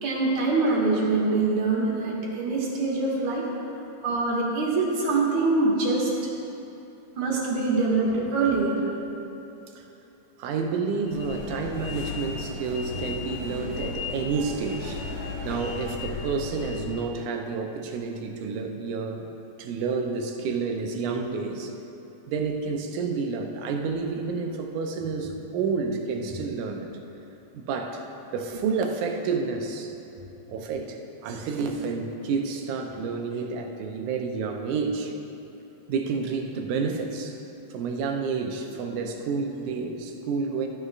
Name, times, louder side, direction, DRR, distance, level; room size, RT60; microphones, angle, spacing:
voice 1, 0.0-3.5 4.0-6.1 7.2-8.8, right 3 dB, 70° right, -4 dB, 2.6 m, -24 dB
voice 2, 10.4-15.0 15.4-19.3 19.6-21.7 22.3-26.9 27.5-28.0 28.3-29.9 30.5-31.0 31.2-35.1 35.9-37.4 37.7-40.7, right 4 dB, 85° right, 3 dB, 2.2 m, -29 dB
sound 1, 11.0-17.0, left 3 dB, 60° left, 2.8 m, -35 dB
14.0 x 9.5 x 2.5 m, 2.9 s
omnidirectional pair, 3.5 m